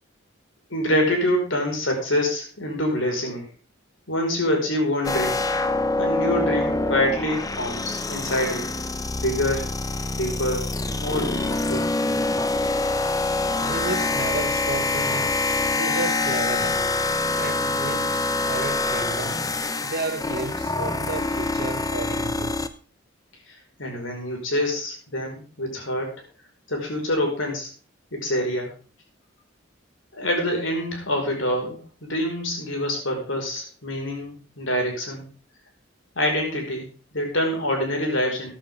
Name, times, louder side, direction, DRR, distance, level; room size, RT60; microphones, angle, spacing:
voice 1, 0.7-3.5 4.1-5.5 6.0-8.8 9.2-9.7 10.1-10.6 11.0-11.9 23.5-26.1 26.7-27.7 28.1-28.7 30.1-35.3 36.2-38.5, left 1 dB, 75° left, 5.2 m, -26 dB
sound 1, 5.0-22.7, left 2 dB, 20° left, 0.7 m, -25 dB
voice 2, 13.6-15.3 15.7-16.8 17.4-19.4 19.8-22.7, right 3 dB, 50° right, 1.1 m, -32 dB
14.0 x 11.0 x 3.7 m
head